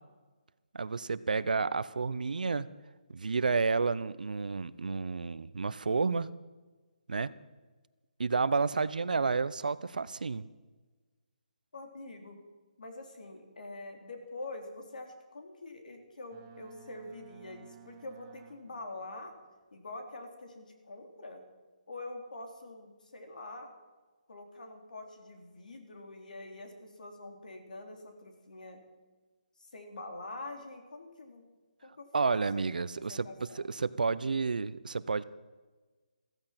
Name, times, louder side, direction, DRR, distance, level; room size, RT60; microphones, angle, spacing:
voice 1, 0.7-2.7 3.1-6.3 7.1-7.3 8.2-10.4 32.1-33.3 33.6-35.2, right 4 dB, 80° right, 17 dB, 0.8 m, -30 dB
voice 2, 11.7-12.4 12.8-19.3 19.7-21.4 21.9-23.7 24.3-28.8 29.6-31.5 31.8-32.6 32.9-33.7, left 2 dB, 70° left, 4 dB, 3.5 m, -45 dB
Boat Water vehicle, 16.3-19.0, right 10 dB, 20° right, 1.0 m, -55 dB
15.0 x 14.5 x 5.9 m, 1.3 s
hypercardioid pair, 165°, 4 cm